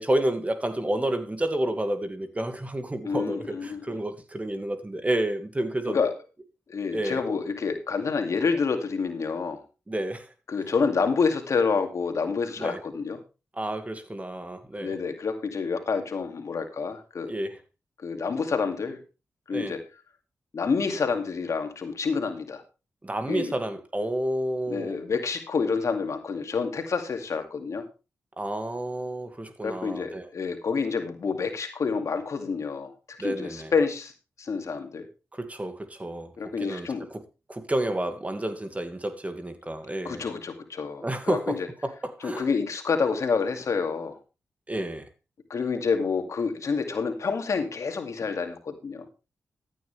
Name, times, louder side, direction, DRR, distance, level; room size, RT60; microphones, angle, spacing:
voice 1, 0.0-6.0 6.9-7.2 9.9-10.3 12.6-12.8 13.5-15.0 17.3-17.6 19.5-19.7 23.0-25.0 28.4-30.3 33.2-33.7 35.3-37.2 37.5-40.2 41.0-42.5 44.7-45.1, right 1 dB, 25° right, 2.1 m, -30 dB
voice 2, 3.0-3.8 5.9-6.1 6.7-9.6 10.5-13.2 14.8-17.3 18.0-19.0 19.5-19.8 20.5-22.6 23.3-23.5 24.7-27.8 29.6-32.9 33.2-34.1 34.4-35.1 36.4-37.1 40.0-41.6 42.2-44.2 45.5-49.0, left 5 dB, 65° left, 2.3 m, -28 dB
14.0 x 9.2 x 3.4 m
supercardioid pair, 40°, 6 cm